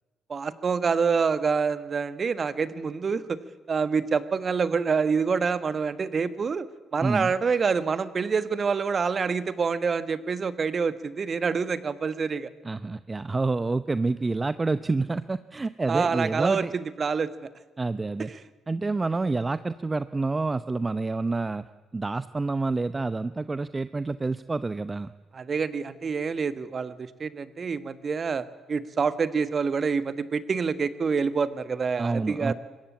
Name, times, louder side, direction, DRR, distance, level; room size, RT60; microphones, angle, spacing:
voice 1, 0.3-3.4 3.7-6.7 6.9-12.5 15.9-17.5 18.3-18.4 25.3-32.5, right 5 dB, 40° right, 13 dB, 1.6 m, -27 dB
voice 2, 7.0-7.3 12.6-16.7 17.8-18.3 18.7-21.6 21.9-25.1 32.0-32.5, right 3 dB, 25° right, 14 dB, 0.8 m, -28 dB
25.0 x 22.0 x 8.7 m, 1.2 s
figure-of-eight pair, 45°, 0 cm